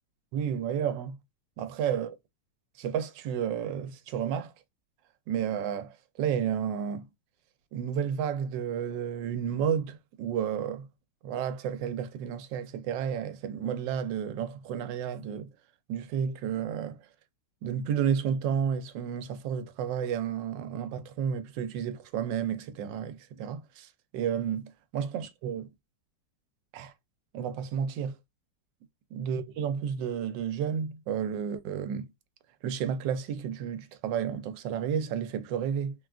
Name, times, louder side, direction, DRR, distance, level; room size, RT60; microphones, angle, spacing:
voice 1, 0.3-1.2 1.6-2.2 2.8-4.5 5.3-7.0 7.7-10.9 11.2-15.5 15.9-17.0 17.6-25.7 26.7-26.9 27.3-28.1 29.1-32.1 32.6-35.9, right 8 dB, 90° right, 1.3 m, -31 dB
3.6 x 2.3 x 2.3 m
omnidirectional pair, 1.9 m